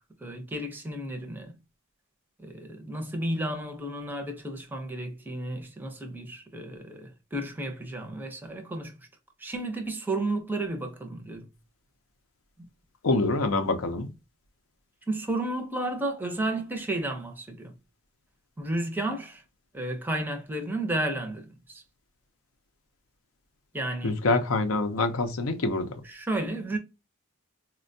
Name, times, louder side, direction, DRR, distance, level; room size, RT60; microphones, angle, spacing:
voice 1, 0.2-1.6 2.4-8.9 9.4-11.5 15.1-17.7 18.6-19.4 19.7-21.8 23.7-24.2 26.0-26.8, right 1 dB, 10° right, 0.5 m, -32 dB
voice 2, 13.0-14.1 24.0-25.9, left 3 dB, 70° left, 0.5 m, -26 dB
4.2 x 2.2 x 2.6 m
head